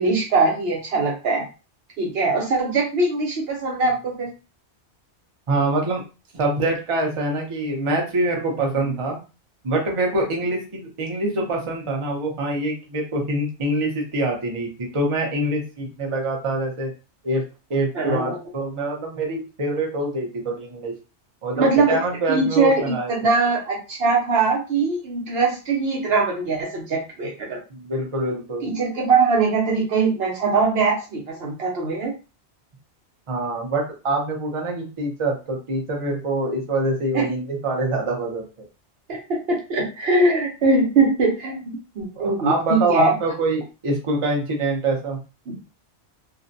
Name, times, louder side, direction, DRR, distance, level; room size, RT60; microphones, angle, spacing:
voice 1, 0.0-1.5 2.0-4.3 17.9-18.4 21.6-22.0 22.3-27.6 28.6-32.1 37.1-37.3 39.1-43.2 45.5-45.6, right 3 dB, 65° right, 0 dB, 0.8 m, -21 dB
voice 2, 5.5-6.0 6.3-9.2 9.6-16.9 17.2-17.4 17.7-20.9 21.4-23.1 27.7-28.7 33.3-38.4 42.2-45.2, right 2 dB, 35° right, 0 dB, 0.6 m, -25 dB
2.5 x 2.1 x 2.5 m, 0.31 s
omnidirectional pair, 1.2 m